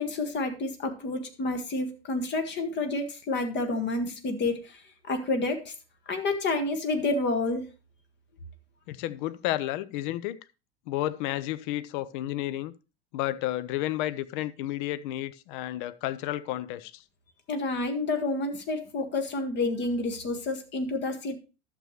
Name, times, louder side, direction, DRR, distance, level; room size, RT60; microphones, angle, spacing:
voice 1, 0.0-4.8 5.1-5.7 6.1-7.7 17.5-21.4, left 2 dB, 35° left, 1.7 m, -29 dB
voice 2, 8.9-10.4 10.9-12.7 13.1-17.0, left 14 dB, 50° left, 0.6 m, -31 dB
12.0 x 6.9 x 3.1 m
figure-of-eight pair, 75°, 31 cm